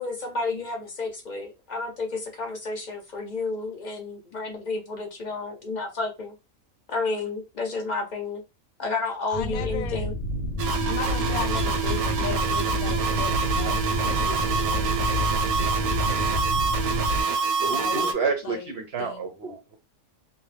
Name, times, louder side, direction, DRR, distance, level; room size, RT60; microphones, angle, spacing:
voice 1, 0.0-6.3 6.9-8.4 8.8-10.1, left 3 dB, 45° left, 0.6 m, -31 dB
voice 2, 9.3-10.1 10.9-14.9 17.8-18.2 18.4-18.7 19.0-19.2, left 9 dB, 90° left, 1.0 m, -36 dB
sound 1, 9.3-17.2, left 1 dB, 65° left, 0.9 m, -28 dB
sound 2, 10.6-18.1, right 6 dB, 85° right, 1.0 m, -26 dB
voice 3, 17.6-19.8, right 5 dB, 60° right, 0.7 m, -29 dB
2.7 x 2.3 x 3.2 m
omnidirectional pair, 1.5 m